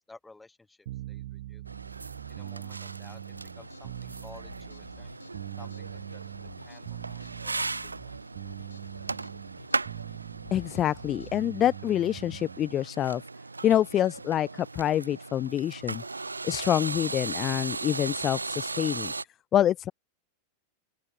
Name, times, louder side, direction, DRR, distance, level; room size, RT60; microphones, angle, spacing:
voice 1, 0.0-1.6 2.3-6.2 6.6-8.1, left 3 dB, 10° left, 7.1 m, -54 dB
sound 1, 0.8-12.7, right 15 dB, 55° right, 4.9 m, -43 dB
sound 2, 1.7-19.2, right 3 dB, 80° right, 1.1 m, -37 dB
sound 3, 3.3-11.5, left 5 dB, 75° left, 1.9 m, -51 dB
voice 2, 10.5-13.2 13.6-16.0 16.4-19.1 19.5-19.9, left 11 dB, 30° left, 0.6 m, -26 dB
open air
figure-of-eight pair, 90°, 0 cm